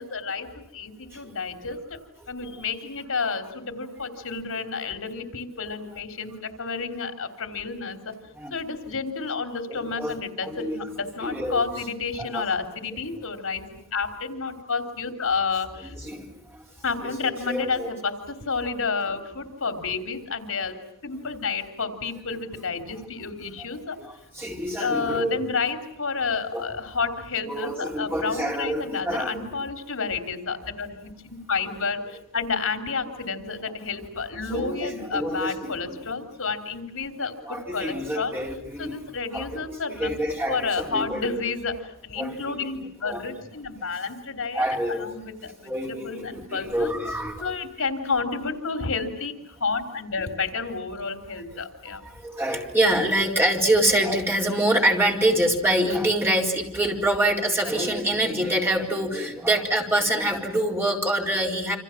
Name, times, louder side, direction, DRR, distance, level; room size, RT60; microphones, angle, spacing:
voice 1, 0.0-2.0 2.3-8.1 8.5-13.6 13.9-16.0 16.8-20.8 21.0-24.0 24.8-38.3 38.8-40.1 40.5-44.6 44.9-46.9 47.4-52.0, left 4 dB, 75° left, 6 dB, 3.5 m, -30 dB
voice 2, 9.7-10.9 11.2-11.6 12.1-12.5 13.1-13.2 16.0-16.3 17.0-17.9 24.0-25.5 26.5-26.7 27.5-29.5 34.5-36.1 37.5-39.0 39.3-41.4 42.2-42.7 43.0-43.3 44.5-45.1 45.7-47.5 52.2-61.8, right 1 dB, 10° right, 0 dB, 4.2 m, -26 dB
28.5 x 26.5 x 7.4 m, 0.76 s
head